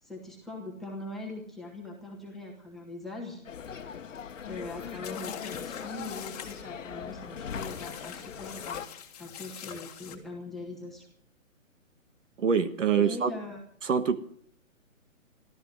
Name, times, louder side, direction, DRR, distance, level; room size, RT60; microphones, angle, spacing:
voice 1, 0.0-3.4 3.7-3.9 4.4-8.8 9.2-11.1 13.0-13.6, left 2 dB, ahead, -3 dB, 1.6 m, -41 dB
sound 1, 3.5-8.9, left 7 dB, 65° left, 1.2 m, -40 dB
sound 2, 5.0-6.6 7.5-10.2, left 8 dB, 30° left, 1.7 m, -44 dB
voice 2, 12.4-13.3 13.8-14.2, right 6 dB, 65° right, 10 dB, 1.5 m, -25 dB
14.0 x 13.0 x 7.6 m, 0.62 s
hypercardioid pair, 165°, 41 cm